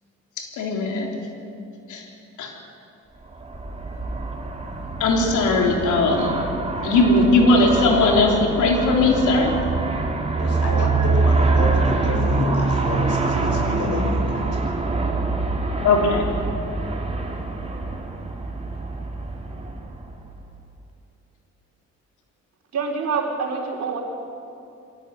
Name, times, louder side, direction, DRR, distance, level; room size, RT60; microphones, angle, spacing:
voice 1, 0.4-1.2 1.9-2.0 2.4-2.5 5.0-6.3 6.8-9.5 15.8-16.3, left 2 dB, 80° left, 1 dB, 3.6 m, -19 dB
Aircraft, 3.3-20.5, right 3 dB, 20° right, 3.0 m, -25 dB
voice 2, 10.4-14.6, left 2 dB, 55° left, 1 dB, 6.6 m, -30 dB
voice 3, 22.7-24.0, right 5 dB, 60° right, 1 dB, 4.1 m, -26 dB
23.0 x 17.5 x 8.2 m, 2.6 s
cardioid pair, 90°, 30 cm